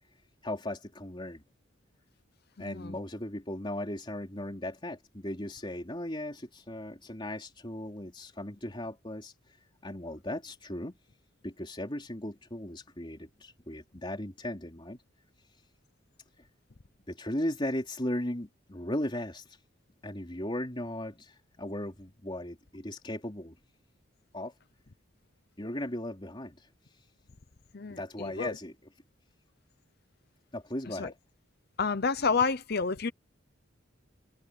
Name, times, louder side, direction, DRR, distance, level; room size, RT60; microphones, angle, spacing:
voice 1, 0.4-1.4 2.6-9.6 9.8-10.9 11.4-15.0 17.1-19.6 20.0-23.6 24.3-24.5 25.6-26.7 27.9-28.7 30.5-31.2, left 1 dB, 25° left, 3.6 m, -37 dB
voice 2, 2.6-2.9 27.7-28.5 31.0-31.1 31.8-33.1, left 5 dB, 50° left, 0.8 m, -29 dB
head